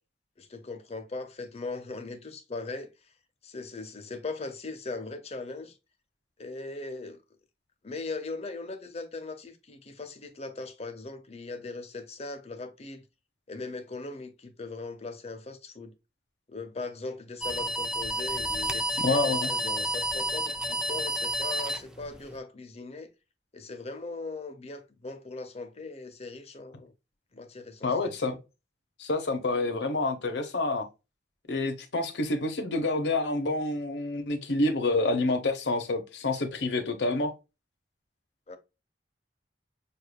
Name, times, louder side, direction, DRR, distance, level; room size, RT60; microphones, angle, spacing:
voice 1, 0.4-2.9 3.4-5.7 6.4-7.2 7.8-13.0 13.5-15.9 16.5-23.1 23.5-26.9 27.3-28.1 38.5-38.6, left 3 dB, 35° left, 0.8 m, -39 dB
sound 1, 17.4-22.4, equal, 5° right, 0.5 m, -30 dB
voice 2, 19.0-19.5 27.8-28.4 29.0-30.9 31.5-37.3, left 2 dB, 75° left, 1.0 m, -28 dB
6.7 x 2.6 x 2.3 m
head